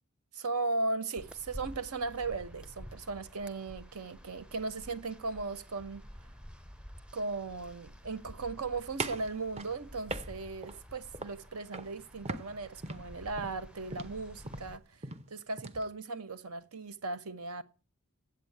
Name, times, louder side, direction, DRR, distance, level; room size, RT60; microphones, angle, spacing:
voice 1, 0.3-6.0 7.1-17.6, right 3 dB, 75° right, 1.0 m, -37 dB
sound 1, 1.2-14.8, equal, 5° right, 0.6 m, -50 dB
sound 2, 9.0-10.8 11.1-11.5 11.7-12.0 12.3-15.9, right 2 dB, 30° right, 0.8 m, -40 dB
8.9 x 8.3 x 7.8 m
head